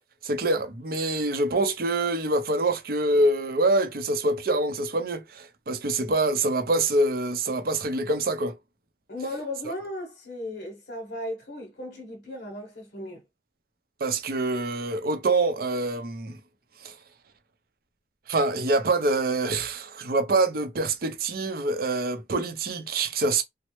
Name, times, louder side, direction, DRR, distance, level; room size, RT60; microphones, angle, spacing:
voice 1, 0.2-8.6 14.0-16.4 16.8-16.9 18.3-23.4, right 2 dB, 55° right, 0.6 m, -25 dB
voice 2, 9.1-13.2, left 1 dB, 60° left, 0.9 m, -36 dB
3.1 x 2.0 x 3.0 m
head